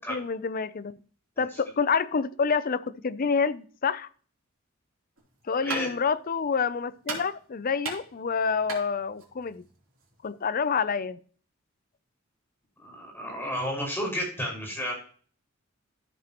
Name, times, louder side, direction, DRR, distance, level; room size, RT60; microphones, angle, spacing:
voice 1, 0.1-0.9 1.4-4.1 5.5-9.6 10.2-11.2, left 5 dB, 45° left, 15 dB, 0.5 m, -28 dB
sound 1, 5.2-10.5, right 4 dB, 80° right, 3.3 m, -40 dB
voice 2, 12.8-14.9, equal, 10° left, -2 dB, 5.6 m, -32 dB
13.5 x 7.6 x 3.0 m, 0.43 s
head